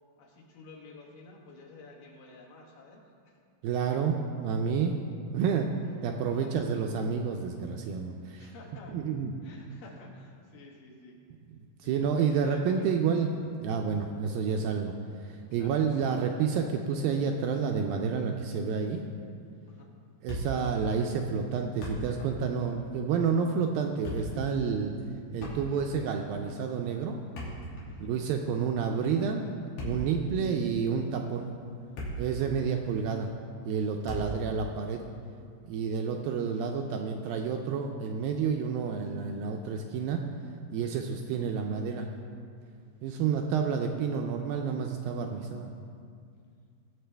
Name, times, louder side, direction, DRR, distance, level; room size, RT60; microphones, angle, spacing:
voice 1, 0.2-3.4 6.3-6.6 8.4-9.0 9.4-11.1 11.8-12.9 15.5-15.7 19.7-19.9 27.9-28.1 32.6-32.7, left 2 dB, 65° left, 0 dB, 2.7 m, -51 dB
voice 2, 3.6-5.0 5.3-5.7 6.0-8.5 8.9-9.3 11.8-14.9 15.2-19.0 20.2-24.9 25.3-27.2 28.0-29.5 29.8-31.5 32.2-33.3 33.7-35.0 35.7-40.2 40.7-42.1 43.0-45.7, right 6 dB, 80° right, 3 dB, 2.1 m, -29 dB
Thump thud, 20.3-20.8 21.1-21.2 21.6-22.4 22.6-22.8 23.8-24.4 25.4-26.0 27.2-28.2 29.6-30.2 30.9-31.1 31.6-32.4 32.7-32.8 34.1-34.5, equal, 85° left, 4.3 m, -38 dB
19.0 x 7.5 x 3.4 m, 2.3 s
omnidirectional pair, 4.6 m